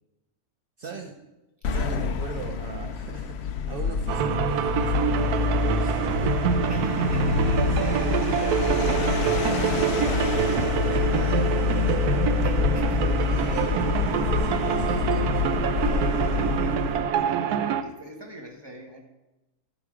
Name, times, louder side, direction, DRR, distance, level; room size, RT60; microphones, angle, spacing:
voice 1, 0.8-1.1 1.7-6.9 7.4-9.4 10.3-12.3 13.1-15.7, right 5 dB, 60° right, 4 dB, 0.6 m, -39 dB
sound 1, 1.6-17.1, left 6 dB, 60° left, 0.7 m, -26 dB
voice 2, 1.7-2.0 6.7-7.8 9.3-10.7 12.4-13.7 15.8-19.0, equal, 15° right, 2 dB, 1.3 m, -43 dB
sound 2, 4.1-17.8, right 8 dB, 85° right, 1.1 m, -26 dB
13.5 x 5.1 x 4.8 m, 1.0 s
omnidirectional pair, 1.6 m